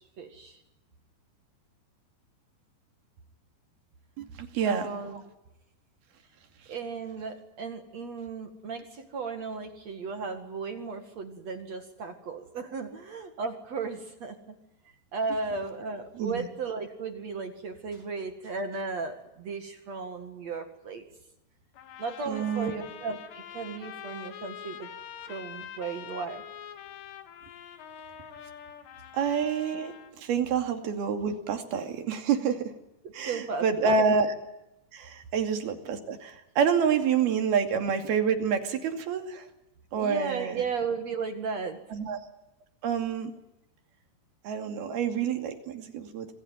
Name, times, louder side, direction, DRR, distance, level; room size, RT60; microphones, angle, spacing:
voice 1, 0.2-0.6 4.6-5.3 6.7-14.4 15.1-21.0 22.0-24.9 25.2-26.4 33.0-33.9 40.0-41.8, right 4 dB, 50° right, 7 dB, 2.6 m, -35 dB
voice 2, 4.2-4.9 16.2-16.5 22.3-22.7 29.1-32.7 33.1-34.3 34.9-39.5 39.9-40.6 41.9-42.2 42.8-43.3 44.4-46.3, right 6 dB, 65° right, 6 dB, 4.3 m, -28 dB
sound 1, 21.7-30.1, left 9 dB, 85° left, 4.3 m, -45 dB
27.0 x 20.5 x 9.2 m, 0.90 s
omnidirectional pair, 4.9 m